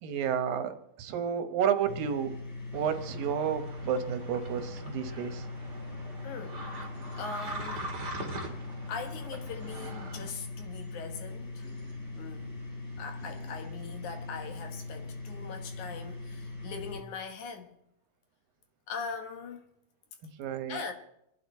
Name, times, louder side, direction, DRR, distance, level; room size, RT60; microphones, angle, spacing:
voice 1, 0.0-2.3 2.7-5.5 20.4-20.8, right 8 dB, 85° right, 2.9 m, -31 dB
sound 1, 1.9-17.0, left 2 dB, 35° left, 4.8 m, -41 dB
sound 2, 2.7-10.3, right 1 dB, 25° right, 2.1 m, -43 dB
voice 2, 6.2-6.6 7.2-7.9 8.9-11.7 12.1-12.5 13.0-17.8 18.9-19.7 20.7-20.9, left 5 dB, 65° left, 2.6 m, -41 dB
26.5 x 11.0 x 4.4 m
omnidirectional pair, 3.9 m